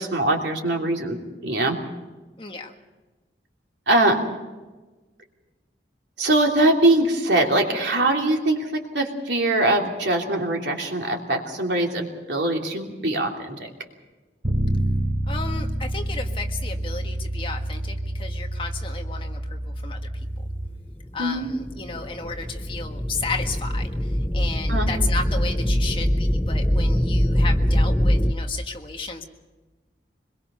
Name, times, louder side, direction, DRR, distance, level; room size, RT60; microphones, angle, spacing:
voice 1, 0.0-1.8 3.9-4.2 6.2-13.6 21.2-21.5 24.7-24.9, right 1 dB, 85° right, 1 dB, 3.1 m, -22 dB
voice 2, 2.4-2.7 15.3-20.0 21.1-29.3, left 4 dB, 30° left, 3 dB, 1.6 m, -33 dB
Bass guitar, 14.4-20.7, right 1 dB, 60° right, 3.4 m, -28 dB
sound 1, 21.4-28.3, equal, 10° left, 0.9 m, -22 dB
25.0 x 21.5 x 5.6 m, 1.2 s
head